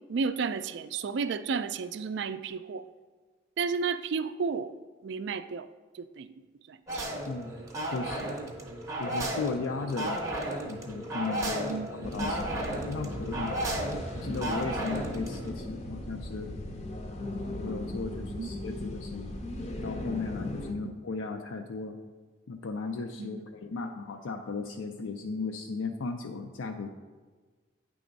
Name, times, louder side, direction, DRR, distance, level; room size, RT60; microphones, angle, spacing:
voice 1, 0.1-2.8 3.6-4.7 5.0-5.7 5.9-6.3 6.7-7.1 11.7-11.9 13.8-14.0 18.4-18.5 20.8-20.9 23.2-23.4, right 5 dB, 60° right, 13 dB, 0.3 m, -32 dB
sound 1, 6.9-15.5, right 1 dB, 15° right, 0.7 m, -34 dB
voice 2, 7.9-8.3 9.0-10.2 10.7-12.5 12.9-13.7 14.1-16.5 17.2-19.5 19.8-22.0 22.5-26.9, left 4 dB, 80° left, 4 dB, 0.4 m, -36 dB
sound 2, 12.0-20.7, left 1 dB, 35° left, 0.6 m, -38 dB
9.2 x 3.4 x 5.2 m, 1.4 s
head